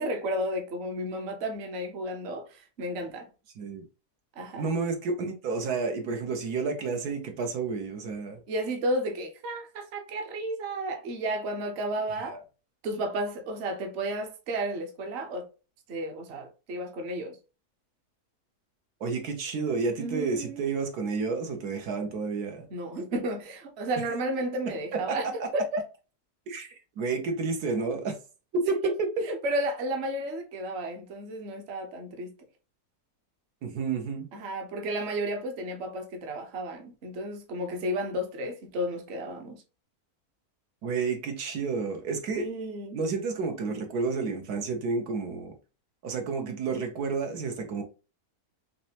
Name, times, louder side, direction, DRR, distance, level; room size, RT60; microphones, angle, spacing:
voice 1, 0.0-3.3 4.4-4.7 8.5-12.4 12.8-15.5 15.9-17.4 20.0-20.7 22.7-25.8 28.5-28.9 29.2-32.3 34.3-39.6 42.3-43.0, right 1 dB, 50° right, 1.0 m, -32 dB
voice 2, 4.5-8.4 12.2-12.4 19.0-22.7 24.9-25.5 26.5-28.2 28.5-29.3 33.6-34.3 40.8-42.5 42.9-45.5 46.0-47.8, right 4 dB, 80° right, 1.4 m, -30 dB
4.2 x 3.2 x 2.8 m
omnidirectional pair, 1.6 m